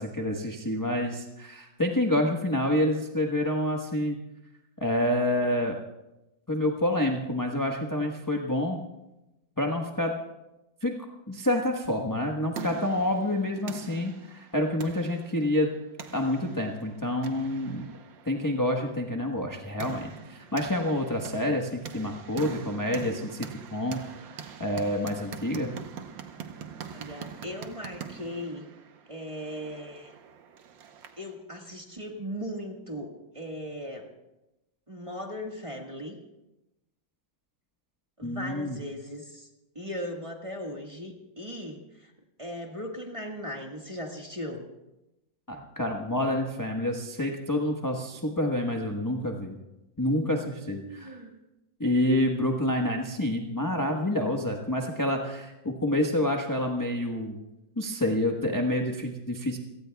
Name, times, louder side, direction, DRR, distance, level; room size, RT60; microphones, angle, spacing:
voice 1, 0.0-4.2 4.8-5.8 6.5-8.8 9.6-10.1 10.8-10.9 11.3-15.7 16.1-17.9 18.3-24.0 24.3-25.7 38.2-38.8 45.5-49.6 50.0-51.2 51.8-57.4 57.8-59.6, left 1 dB, 15° left, 1 dB, 1.0 m, -28 dB
sound 1, 12.1-31.3, right 7 dB, 75° right, 1.7 m, -44 dB
voice 2, 26.9-28.6 29.1-30.1 31.2-34.1 34.9-36.2 38.2-39.5 39.7-42.1 42.4-44.7 50.6-51.3, equal, 15° right, 1 dB, 1.5 m, -38 dB
28.5 x 17.5 x 2.3 m, 0.95 s
omnidirectional pair, 2.1 m